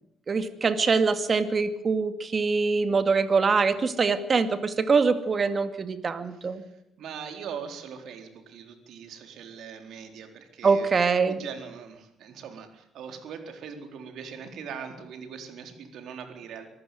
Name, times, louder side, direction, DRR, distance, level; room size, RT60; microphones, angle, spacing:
voice 1, 0.3-6.6 10.6-11.4, right 4 dB, 40° right, 9 dB, 2.4 m, -24 dB
voice 2, 6.3-10.9 11.2-16.7, right 7 dB, 75° right, 6 dB, 4.0 m, -41 dB
25.0 x 14.5 x 9.4 m, 0.80 s
cardioid pair, 90°, 0 cm